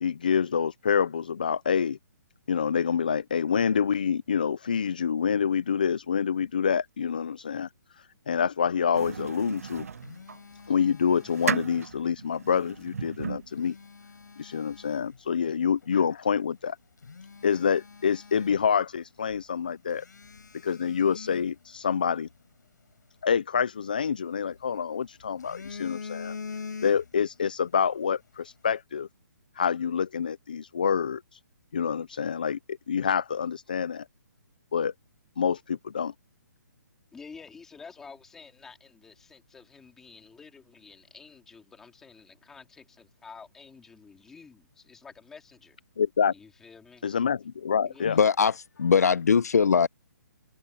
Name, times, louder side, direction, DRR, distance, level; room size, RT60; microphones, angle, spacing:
voice 1, 0.0-2.0 2.5-7.7 8.0-9.9 10.7-13.8 14.4-16.8 17.4-20.0 20.6-22.3 23.2-26.4 26.8-29.1 29.6-31.4 31.7-34.0 34.7-34.9 35.4-36.1 46.0-46.3 47.0-48.2, left 7 dB, 30° left, 0.3 m, -27 dB
sound 1, 8.9-10.4 10.9-13.7, right 6 dB, 50° right, 0.6 m, -35 dB
Telephone, 9.5-12.0 13.3-15.2 15.8-16.0 16.5-16.6 17.0-19.0 19.3-19.4 19.9-22.3 23.8-24.8 25.2-27.4 27.6-27.9, left 5 dB, 75° left, 5.3 m, -44 dB
voice 2, 37.1-45.8 46.3-47.0 47.8-48.2, left 5 dB, 5° left, 2.4 m, -50 dB
voice 3, 48.0-49.9, left 6 dB, 60° left, 0.7 m, -21 dB
hypercardioid pair, 180°, 10 cm